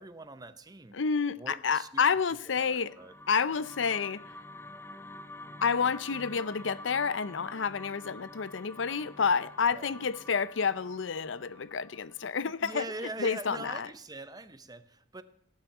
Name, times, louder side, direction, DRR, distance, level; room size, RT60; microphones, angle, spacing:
voice 1, 0.0-1.0 1.4-2.0 2.5-3.1 9.7-9.9 12.2-15.2, right 2 dB, 20° right, 0.9 m, -43 dB
voice 2, 0.9-2.9 3.3-4.2 5.6-12.8 13.2-13.9, left 6 dB, 80° left, 0.6 m, -29 dB
sound 1, 2.7-12.9, left 1 dB, 15° left, 0.5 m, -48 dB
17.0 x 7.4 x 9.1 m
head